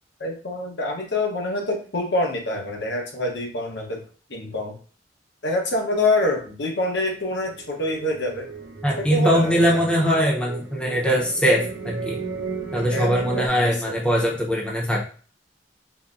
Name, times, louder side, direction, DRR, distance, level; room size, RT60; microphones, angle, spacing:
voice 1, 0.2-4.0 4.3-4.7 5.4-8.5 9.0-9.8 12.9-13.9, left 2 dB, 70° left, 1 dB, 0.9 m, -26 dB
sound 1, 6.7-13.5, right 5 dB, 65° right, 0.7 m, -34 dB
voice 2, 8.8-12.2 12.7-15.1, equal, 5° left, -2 dB, 0.6 m, -21 dB
3.9 x 2.1 x 2.5 m, 0.39 s
head